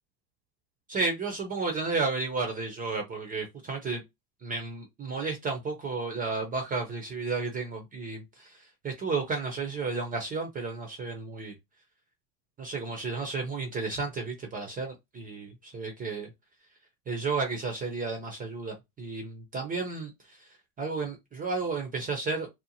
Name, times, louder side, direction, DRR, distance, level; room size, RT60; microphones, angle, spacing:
voice 1, 0.9-4.0 4.4-11.5 12.6-16.3 17.1-20.5 20.8-22.5, right 4 dB, 20° right, 0.5 m, -32 dB
2.7 x 2.1 x 2.7 m
supercardioid pair, 120°, 48 cm